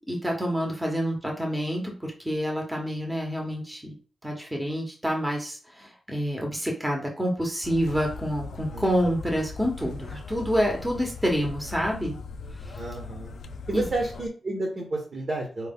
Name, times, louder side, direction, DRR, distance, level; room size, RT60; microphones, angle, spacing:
voice 1, 0.1-3.9 4.2-12.1 12.6-12.8 13.7-13.8, equal, 10° right, 0 dB, 1.3 m, -28 dB
sound 1, 7.6-14.3, left 4 dB, 75° left, 0.4 m, -39 dB
voice 2, 12.8-13.3 13.7-15.7, right 2 dB, 45° right, 0 dB, 1.3 m, -31 dB
4.4 x 3.2 x 3.7 m, 0.37 s
wide cardioid pair, 135°, 0 cm